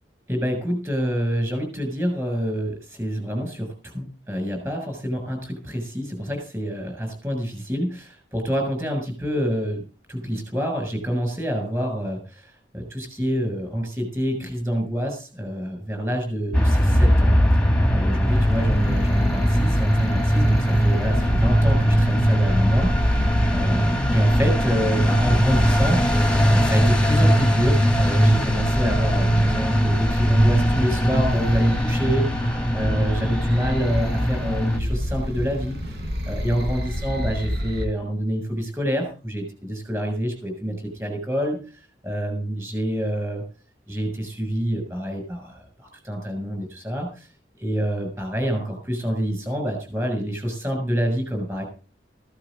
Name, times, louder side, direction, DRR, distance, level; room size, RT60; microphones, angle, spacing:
voice 1, 0.3-9.8 10.1-17.6 17.9-23.2 23.5-32.5 32.7-36.0 36.3-41.6 42.0-43.4 43.9-47.3 47.6-51.6, equal, 15° right, 4 dB, 7.0 m, -27 dB
sound 1, 16.5-34.8, equal, 5° left, 1.7 m, -20 dB
sound 2, 18.3-37.9, equal, 65° right, 4.2 m, -28 dB
15.5 x 14.5 x 3.8 m, 0.35 s
head